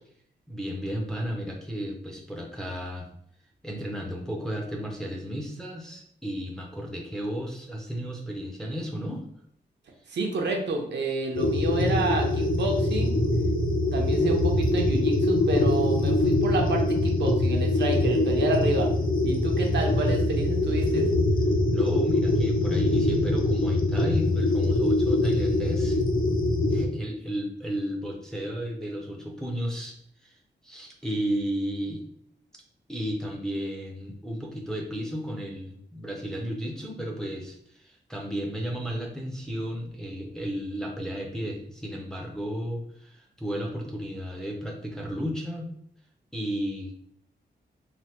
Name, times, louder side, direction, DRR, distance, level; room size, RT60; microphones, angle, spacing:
voice 1, 0.5-3.1 3.6-9.3 21.7-26.0 26.7-29.9 30.2-30.4 30.6-32.0 32.9-45.7 46.3-46.9, equal, 5° left, -1 dB, 0.5 m, -33 dB
voice 2, 10.1-13.2 13.9-18.9 19.2-21.1, right 3 dB, 70° right, 1 dB, 0.6 m, -29 dB
sound 1, 11.3-26.8, left 2 dB, 50° left, 0.5 m, -23 dB
3.3 x 2.1 x 2.9 m, 0.68 s
wide cardioid pair, 130°, 18 cm